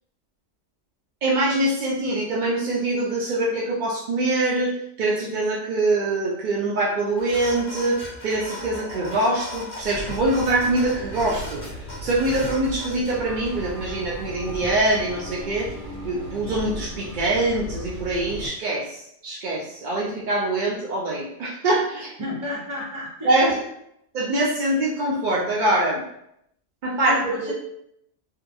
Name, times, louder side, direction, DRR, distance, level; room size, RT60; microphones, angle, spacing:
voice 1, 1.2-11.6 12.0-15.7 16.0-22.1 23.2-23.7 24.1-26.0 26.8-27.5, right 2 dB, 75° right, -4 dB, 0.4 m, -24 dB
sound 1, 7.2-13.1, left 1 dB, 25° left, 0.6 m, -38 dB
sound 2, 9.8-18.5, equal, 45° left, 1.1 m, -36 dB
voice 2, 22.2-23.4 26.9-27.5, left 2 dB, 25° right, -7 dB, 0.9 m, -32 dB
2.6 x 2.3 x 2.5 m, 0.75 s
omnidirectional pair, 1.4 m